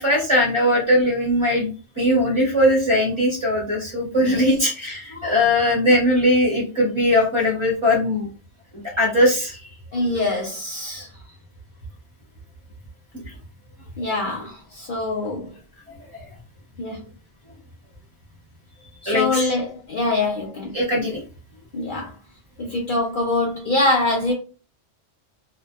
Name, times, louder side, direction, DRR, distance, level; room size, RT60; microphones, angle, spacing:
voice 1, 0.0-1.7 2.0-8.3 9.0-9.6 9.9-10.1 19.1-19.5 20.7-21.2, left 1 dB, 30° right, 0.7 m, -20 dB
voice 2, 9.9-11.1 14.0-15.5 16.8-17.0 19.0-20.7 21.7-22.1 22.6-24.3, left 2 dB, 60° left, 0.6 m, -24 dB
2.6 x 2.1 x 2.3 m
omnidirectional pair, 1.2 m